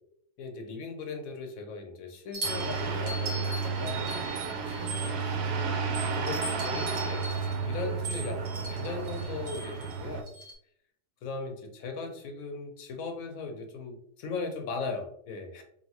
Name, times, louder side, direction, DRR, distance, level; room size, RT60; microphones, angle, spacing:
voice 1, 0.4-5.6 6.1-10.3 11.2-15.6, left 4 dB, 70° left, 4 dB, 0.9 m, -38 dB
sound 1, 2.3-5.4 5.9-10.5, right 2 dB, 65° right, 1.7 m, -39 dB
sound 2, 2.4-10.2, right 5 dB, 85° right, 1.1 m, -32 dB
3.1 x 2.6 x 2.8 m, 0.69 s
omnidirectional pair, 1.7 m